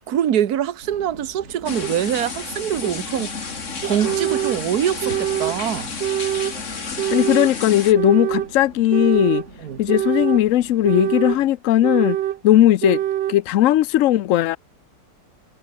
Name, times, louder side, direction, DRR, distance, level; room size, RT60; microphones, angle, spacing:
voice 1, 0.1-3.5 3.8-5.9 9.6-9.8, right 10 dB, 60° right, 1.6 m, -24 dB
sound 1, 0.8-11.5, right 2 dB, 40° right, 5.4 m, -45 dB
sound 2, 1.7-7.9, left 5 dB, 40° left, 2.2 m, -31 dB
sound 3, 1.8-1.9 2.8-2.9 3.8-4.6 5.0-5.6 6.0-6.6 7.0-7.5 7.9-8.5 8.9-9.5 9.9-10.4 10.8-11.4 11.8-12.4 12.8-13.4, right 12 dB, 80° right, 1.6 m, -24 dB
voice 2, 7.1-9.4 9.8-12.2 12.4-13.0 13.3-14.6, left 13 dB, 65° left, 0.8 m, -17 dB
omnidirectional pair, 2.0 m